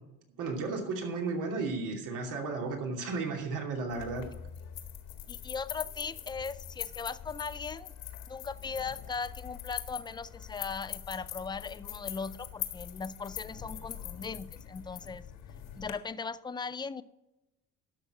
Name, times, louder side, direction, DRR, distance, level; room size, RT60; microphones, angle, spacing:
voice 1, 0.4-4.3, right 3 dB, 75° right, 2.8 m, -34 dB
sound 1, 3.9-15.9, left 11 dB, 80° left, 1.7 m, -43 dB
voice 2, 5.3-7.9 8.3-15.2 15.8-17.0, left 5 dB, 15° left, 0.4 m, -38 dB
12.0 x 6.7 x 6.0 m
cardioid pair, 115°, 32 cm